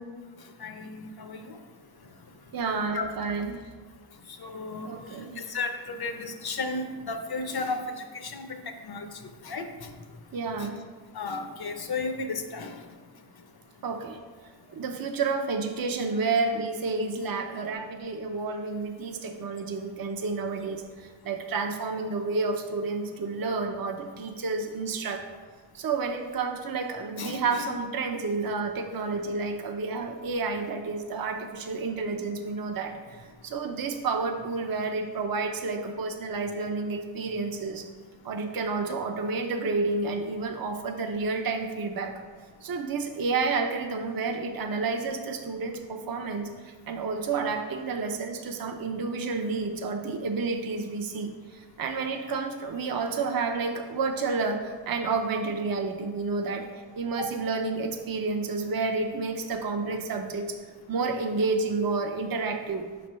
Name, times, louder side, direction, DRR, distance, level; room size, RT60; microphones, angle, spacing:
voice 1, 0.4-1.6 2.9-3.1 4.3-9.9 10.6-10.7 11.1-12.8 27.2-27.7 57.2-57.3, left 3 dB, 55° left, 6 dB, 0.7 m, -34 dB
voice 2, 2.5-3.6 4.8-5.4 10.3-10.8 13.8-14.2 14.7-25.2 25.7-37.9 38.2-42.1 42.6-60.6 60.9-62.9, right 4 dB, 50° right, 4 dB, 0.6 m, -30 dB
5.8 x 3.3 x 5.4 m, 1.4 s
wide cardioid pair, 75°, 46 cm